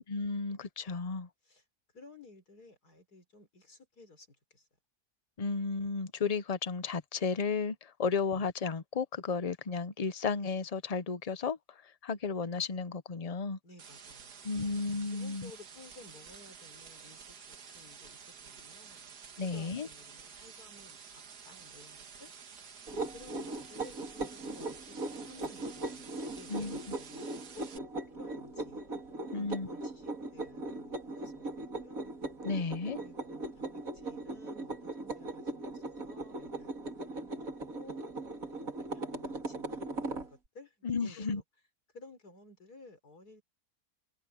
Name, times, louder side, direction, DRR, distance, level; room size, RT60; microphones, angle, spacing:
voice 1, 0.1-1.3 5.4-11.6 12.0-13.6 14.4-15.5 19.4-19.9 26.5-26.9 29.3-29.7 32.4-33.0 40.8-41.4, left 4 dB, 35° left, 0.6 m, -33 dB
voice 2, 1.9-4.7 8.0-8.1 13.6-14.7 15.1-22.3 23.1-27.2 27.5-27.8 28.2-28.9 29.3-32.1 33.0-36.7 37.1-37.4 37.7-38.0 38.6-41.4 41.9-43.4, left 2 dB, 75° left, 4.7 m, -56 dB
sound 1, 13.8-27.8, right 6 dB, 80° right, 2.1 m, -51 dB
sound 2, 22.9-40.3, right 2 dB, 60° right, 3.7 m, -39 dB
omnidirectional pair, 1.7 m